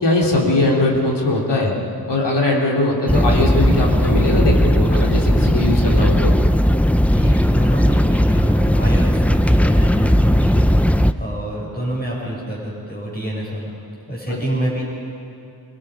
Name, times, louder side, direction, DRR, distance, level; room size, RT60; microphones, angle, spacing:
voice 1, 0.0-1.7 2.1-6.3 14.3-14.4, left 2 dB, 90° left, -2 dB, 3.5 m, -20 dB
sound 1, 3.1-11.1, equal, 5° left, 0.7 m, -16 dB
voice 2, 7.0-13.7 14.1-14.8, right 1 dB, 25° left, -4 dB, 6.0 m, -27 dB
29.0 x 23.0 x 5.1 m, 2.6 s
wide cardioid pair, 50°, 40 cm